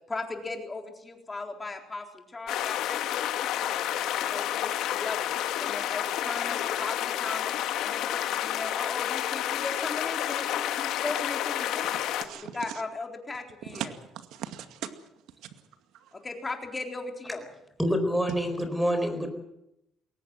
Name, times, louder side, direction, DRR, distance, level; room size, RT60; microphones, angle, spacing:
voice 1, 0.1-3.3 3.5-5.3 5.6-7.6 7.8-12.0 12.3-13.9 16.2-17.5, left 3 dB, 20° left, 3 dB, 4.0 m, -37 dB
sound 1, 2.5-12.2, left 11 dB, 75° left, 1.9 m, -30 dB
voice 2, 11.8-12.6 13.7-13.9 14.3-14.9 16.0-16.1, right 11 dB, 80° right, 8 dB, 2.2 m, -38 dB
voice 3, 17.8-19.3, equal, ahead, 8 dB, 4.3 m, -26 dB
22.0 x 18.5 x 7.9 m, 0.83 s
cardioid pair, 130°, 0 cm